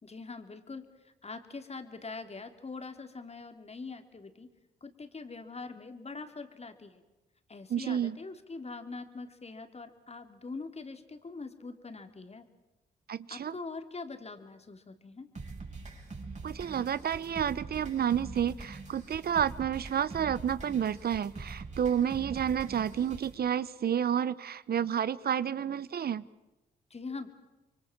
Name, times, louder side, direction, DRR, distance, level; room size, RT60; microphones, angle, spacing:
voice 1, 0.0-0.9 1.2-4.5 4.8-7.0 7.5-12.5 13.3-15.3 26.9-27.3, left 3 dB, 35° left, 8 dB, 3.1 m, -43 dB
voice 2, 7.7-8.2 13.1-13.5 16.4-26.3, right 9 dB, 55° right, 19 dB, 0.9 m, -30 dB
sound 1, 15.4-23.3, right 3 dB, 40° right, 6.3 m, -44 dB
26.5 x 23.5 x 7.3 m, 1.0 s
supercardioid pair, 50°, 19 cm